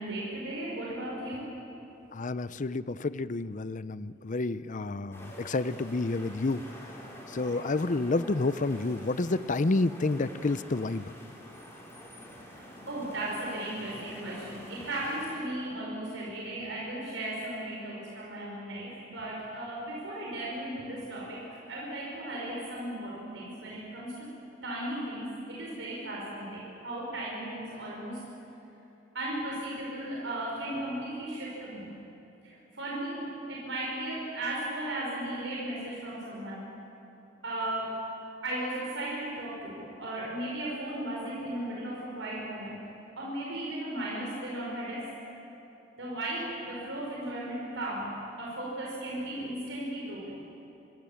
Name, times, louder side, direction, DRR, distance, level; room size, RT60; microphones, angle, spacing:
voice 1, 0.0-1.6 7.5-7.6 12.3-24.3 24.6-28.2 29.1-31.9 32.4-36.7 37.4-38.0 38.4-42.9 43.2-45.1 46.0-50.4, right 1 dB, 90° right, -4 dB, 5.2 m, -36 dB
voice 2, 2.1-6.7 7.3-11.0, left 2 dB, 45° left, 15 dB, 0.6 m, -29 dB
sound 1, 5.1-15.4, equal, 15° left, 4.4 m, -47 dB
25.5 x 24.5 x 7.3 m, 2.9 s
head